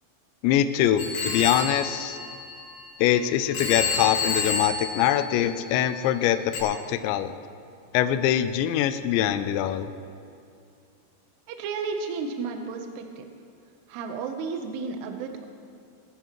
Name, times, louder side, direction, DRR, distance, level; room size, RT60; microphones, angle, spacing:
voice 1, 0.4-2.2 3.0-7.3 7.9-9.9, left 11 dB, 85° left, 9 dB, 2.6 m, -23 dB
Telephone, 1.0-3.1 3.5-5.9 6.5-6.6, left 4 dB, 65° left, 2.6 m, -30 dB
voice 2, 11.5-13.2 13.9-15.5, right 4 dB, 75° right, 5 dB, 2.6 m, -32 dB
21.0 x 11.0 x 3.1 m, 2.5 s
omnidirectional pair, 5.6 m